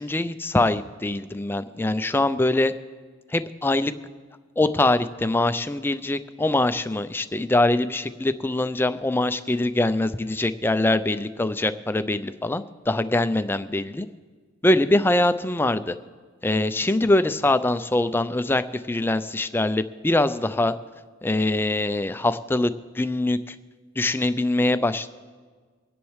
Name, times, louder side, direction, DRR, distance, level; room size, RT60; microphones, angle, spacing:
voice 1, 0.0-2.7 3.3-3.9 4.6-14.1 14.6-16.0 16.4-20.8 21.2-23.6 24.0-25.1, left 2 dB, 10° left, 12 dB, 0.4 m, -23 dB
25.0 x 10.5 x 3.2 m, 1.5 s
head